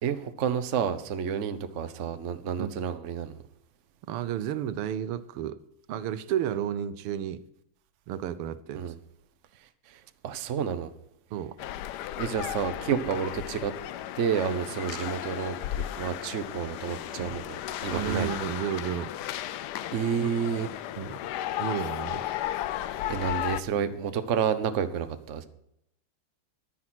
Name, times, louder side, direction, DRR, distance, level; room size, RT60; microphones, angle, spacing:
voice 1, 0.0-3.4 8.8-9.0 9.9-10.0 10.2-10.9 12.2-13.7 14.2-15.6 16.0-18.3 19.9-20.7 23.1-25.5, right 7 dB, 55° right, 0.8 m, -30 dB
voice 2, 4.1-5.6 5.9-7.4 8.1-8.9 11.3-11.6 14.7-14.8 17.2-17.4 17.9-19.1 21.0-21.2 21.6-22.3, right 10 dB, 80° right, 1.6 m, -32 dB
sound 1, 11.6-23.6, left 12 dB, 85° left, 0.9 m, -35 dB
11.5 x 9.7 x 6.2 m
omnidirectional pair, 2.4 m